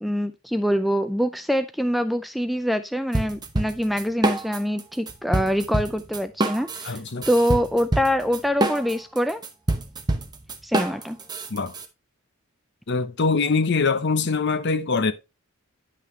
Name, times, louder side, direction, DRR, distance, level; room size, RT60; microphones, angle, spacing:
voice 1, 0.0-7.0 7.3-9.4 10.6-11.2, equal, ahead, 0.4 m, -24 dB
sound 1, 3.1-4.8 5.1-11.9, right 2 dB, 20° right, 0.8 m, -26 dB
voice 2, 6.8-7.3 11.5-11.7 12.9-15.1, left 4 dB, 50° left, 0.7 m, -23 dB
10.5 x 5.7 x 3.0 m
head